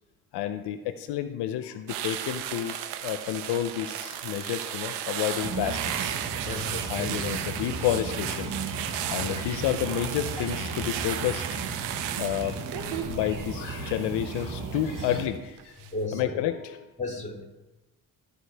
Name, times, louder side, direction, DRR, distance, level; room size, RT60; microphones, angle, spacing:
voice 1, 0.3-6.2 6.9-8.5 8.8-11.6 12.1-15.8 16.1-16.9, left 11 dB, 80° left, 10 dB, 0.6 m, -30 dB
sound 1, 1.9-15.2 15.6-15.9, right 10 dB, 90° right, 0.8 m, -35 dB
sound 2, 5.4-15.3, right 4 dB, 50° right, 1.5 m, -35 dB
voice 2, 6.4-7.1 9.2-9.3 15.9-16.3 17.0-17.4, left 2 dB, 15° left, 1 dB, 2.6 m, -34 dB
14.5 x 5.0 x 3.4 m, 1.1 s
supercardioid pair, 55°, 40 cm